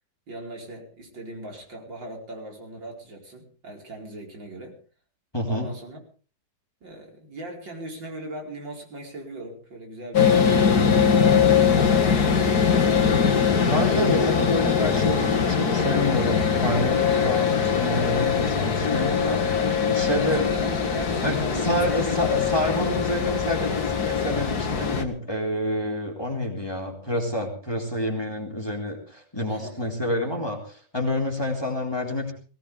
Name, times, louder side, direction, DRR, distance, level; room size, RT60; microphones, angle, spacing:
voice 1, 0.3-4.8 5.5-6.0 6.8-10.6 10.9-11.4 12.0-13.5 19.3-19.6 20.2-22.4 22.8-23.1 29.5-29.9, right 1 dB, 80° right, 0 dB, 5.4 m, -39 dB
voice 2, 5.3-5.7 13.7-19.5 19.8-20.5 21.2-32.3, left 1 dB, 15° left, 1 dB, 3.8 m, -28 dB
sound 1, 10.1-25.0, left 6 dB, 55° left, 2.3 m, -22 dB
20.5 x 17.5 x 3.5 m, 0.39 s
omnidirectional pair, 2.0 m